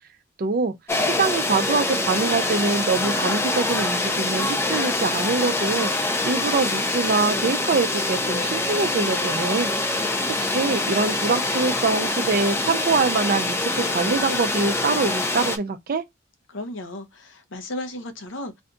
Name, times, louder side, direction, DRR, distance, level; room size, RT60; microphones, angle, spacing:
voice 1, 0.4-0.7 1.0-9.7 10.4-16.0, right 4 dB, 50° right, 0.4 m, -24 dB
sound 1, 0.9-15.6, left 2 dB, 15° left, 0.4 m, -25 dB
voice 2, 16.5-18.5, left 1 dB, 80° left, 0.7 m, -34 dB
2.5 x 2.3 x 3.7 m
head